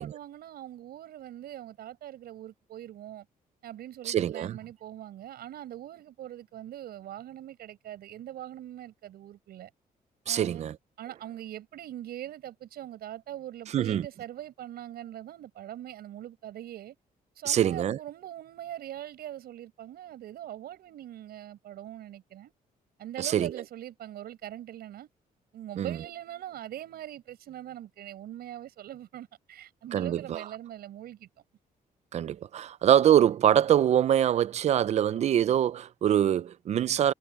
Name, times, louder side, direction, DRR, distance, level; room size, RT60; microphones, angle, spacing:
voice 1, 0.0-3.3 3.6-9.7 10.3-10.6 11.0-17.0 17.3-22.5 23.0-25.1 25.5-31.3, right 12 dB, 85° right, 6.1 m, -42 dB
voice 2, 4.0-4.6 10.3-10.8 13.7-14.1 17.5-18.0 23.2-23.5 25.8-26.0 29.9-30.4 32.1-37.1, right 10 dB, 45° right, 0.5 m, -24 dB
cardioid pair, 160°, 16 cm